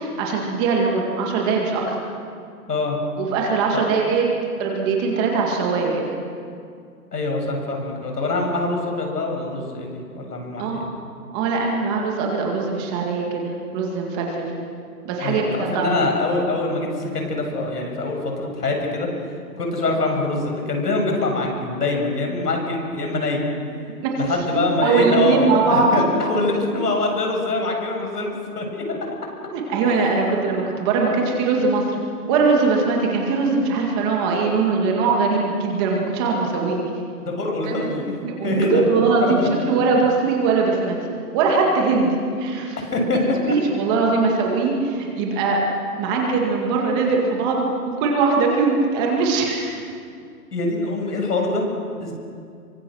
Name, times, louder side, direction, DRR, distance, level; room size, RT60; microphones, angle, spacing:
voice 1, 0.0-2.0 3.2-4.2 4.6-6.0 10.6-10.8 11.3-14.5 15.0-16.0 24.0-24.1 24.8-26.0 29.5-32.0 32.3-36.8 37.6-37.7 38.2-41.0 41.3-42.8 43.0-45.6 46.0-47.7 48.0-49.8, right 4 dB, 15° right, 0 dB, 2.1 m, -21 dB
voice 2, 7.1-10.9 15.2-23.5 24.2-29.0 37.3-38.8 39.2-39.5 42.9-43.2 44.1-44.2 50.5-51.6 52.0-52.1, left 2 dB, 80° left, 2 dB, 7.5 m, -24 dB
27.5 x 24.0 x 6.4 m, 2.3 s
hypercardioid pair, 170°, 46 cm